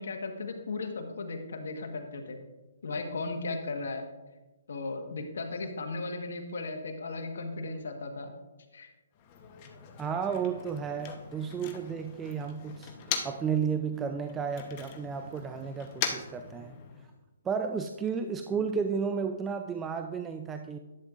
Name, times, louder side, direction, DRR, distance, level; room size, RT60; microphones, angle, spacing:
voice 1, 0.0-2.4 2.8-4.0 4.7-8.3 8.7-8.9 18.5-18.6, left 3 dB, 70° left, 5 dB, 1.3 m, -36 dB
Motor vehicle (road), 9.1-13.6 13.9-17.2, left 7 dB, 30° left, 0.9 m, -40 dB
voice 2, 10.0-12.9 13.2-16.8 17.4-20.8, right 6 dB, 15° right, 7 dB, 0.3 m, -32 dB
11.5 x 7.8 x 2.5 m, 1.1 s
hypercardioid pair, 150°, 0 cm